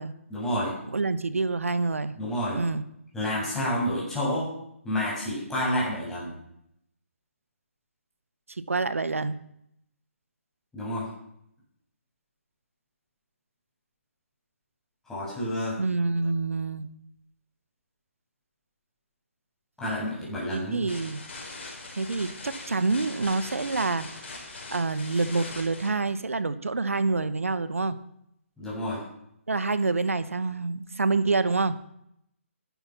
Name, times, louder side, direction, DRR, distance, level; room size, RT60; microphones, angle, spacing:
voice 1, 0.3-0.8 2.2-2.6 3.1-4.5 4.8-6.3 10.7-11.1 15.1-15.8 19.8-20.9 28.6-29.0, equal, 5° left, -8 dB, 7.9 m, -29 dB
voice 2, 0.9-2.1 2.5-2.8 8.7-9.4 15.8-16.9 20.5-21.2 21.9-24.1 24.7-28.0 29.5-31.7, right 3 dB, 70° right, 14 dB, 1.2 m, -27 dB
sound 1, 20.9-25.9, left 3 dB, 50° left, 4.7 m, -41 dB
13.5 x 12.0 x 6.0 m, 0.74 s
figure-of-eight pair, 145°, 8 cm